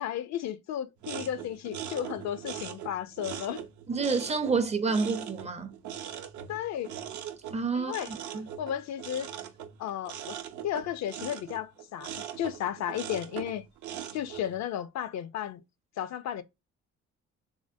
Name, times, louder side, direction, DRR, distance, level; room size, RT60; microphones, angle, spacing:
voice 1, 0.0-3.6 6.5-6.9 7.7-8.1 8.6-9.3 9.8-10.4 10.6-13.6 14.1-15.6 16.0-16.4, left 10 dB, 65° left, 0.4 m, -34 dB
sound 1, 1.0-14.6, right 9 dB, 70° right, 0.6 m, -41 dB
voice 2, 3.9-5.7 7.5-8.5, right 4 dB, 20° right, 0.4 m, -29 dB
3.5 x 2.1 x 2.6 m
cardioid pair, 90°, 30 cm